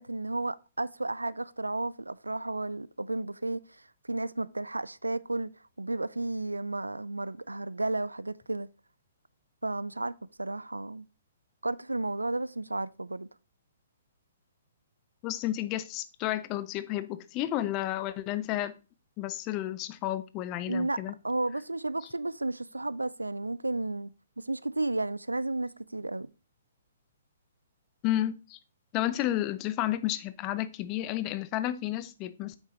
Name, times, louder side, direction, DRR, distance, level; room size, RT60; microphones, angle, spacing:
voice 1, 0.0-5.5 5.8-8.7 9.6-10.1 10.4-11.1 11.6-13.3 20.7-21.0 21.2-24.1 24.4-26.3, right 2 dB, 80° right, 0.3 m, -33 dB
voice 2, 15.2-18.8 19.2-21.2 28.0-28.6 28.9-32.6, left 14 dB, 30° left, 0.6 m, -31 dB
8.2 x 6.5 x 3.0 m
figure-of-eight pair, 120°, 0 cm